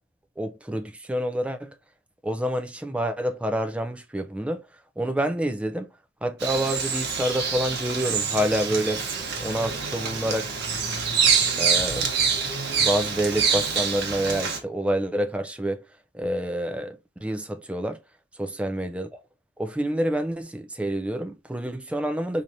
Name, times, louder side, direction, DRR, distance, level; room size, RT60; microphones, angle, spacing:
voice 1, 0.4-1.7 2.2-4.6 5.0-5.9 6.2-9.0 9.4-10.5 11.6-12.1 12.8-15.8 16.1-18.0 18.4-19.1 19.6-22.4, right 1 dB, 5° right, 0.3 m, -27 dB
Bird vocalization bird call bird song, 6.4-14.6, right 6 dB, 50° right, 0.9 m, -26 dB
4.4 x 2.8 x 2.6 m
head